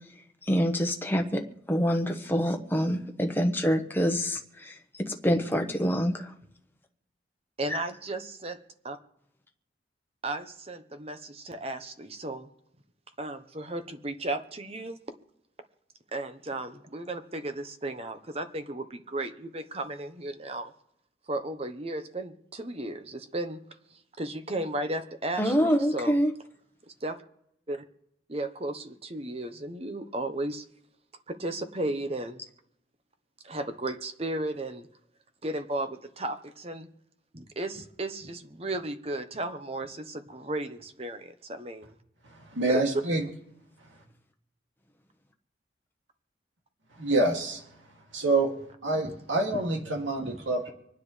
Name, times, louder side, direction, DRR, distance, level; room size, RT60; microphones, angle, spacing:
voice 1, 0.5-1.4 1.7-6.3 7.7-7.8 25.4-26.3, equal, 10° left, 3 dB, 1.2 m, -26 dB
voice 2, 7.6-8.6 8.8-9.0 10.2-12.5 13.2-15.0 16.1-20.7 21.3-23.6 24.2-26.2 27.0-27.2 27.7-27.8 28.3-30.6 31.3-32.4 33.4-34.9 35.4-36.9 37.3-41.9 42.7-42.8 50.2-50.4, right 2 dB, 30° right, 8 dB, 1.0 m, -34 dB
voice 3, 42.2-43.2 47.0-47.6 48.1-48.5 48.8-50.7, right 2 dB, 85° right, 1 dB, 2.5 m, -27 dB
26.5 x 9.8 x 3.3 m, 0.75 s
head